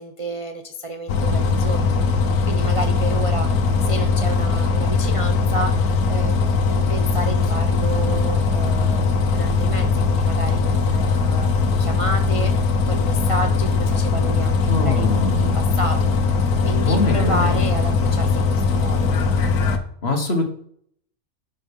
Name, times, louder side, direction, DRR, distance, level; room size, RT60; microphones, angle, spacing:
voice 1, 0.0-6.4 6.7-16.4 16.6-19.1, right 1 dB, 30° right, 4 dB, 0.6 m, -31 dB
Bus, 1.1-19.8, left 4 dB, 85° left, 1.5 m, -20 dB
voice 2, 14.7-15.5 16.7-17.7 20.0-20.5, left 3 dB, 45° left, 5 dB, 1.7 m, -23 dB
11.5 x 5.7 x 5.3 m, 0.65 s
omnidirectional pair, 1.5 m